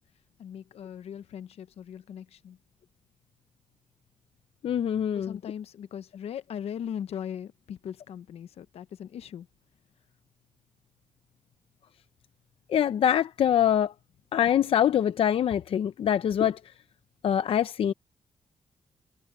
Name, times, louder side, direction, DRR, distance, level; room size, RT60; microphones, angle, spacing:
voice 1, 0.4-2.6 5.1-9.5, left 9 dB, 80° left, 0.8 m, -39 dB
voice 2, 4.6-5.4 12.7-13.9 14.3-16.6 17.2-17.9, left 9 dB, 65° left, 0.5 m, -24 dB
wide cardioid pair, 155°, 10 cm